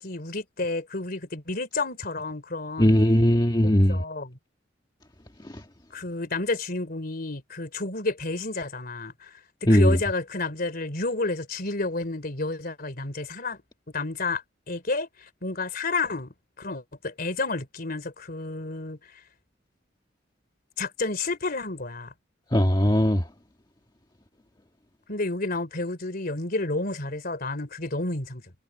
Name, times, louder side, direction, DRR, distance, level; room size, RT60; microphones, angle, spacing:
voice 1, 0.0-3.0 3.6-4.4 5.9-13.6 13.9-15.1 15.4-19.0 20.8-22.1 25.1-28.4, left 3 dB, 50° left, 3.2 m, -30 dB
voice 2, 2.8-4.0 9.7-10.0 22.5-23.2, equal, 25° left, 1.5 m, -19 dB
head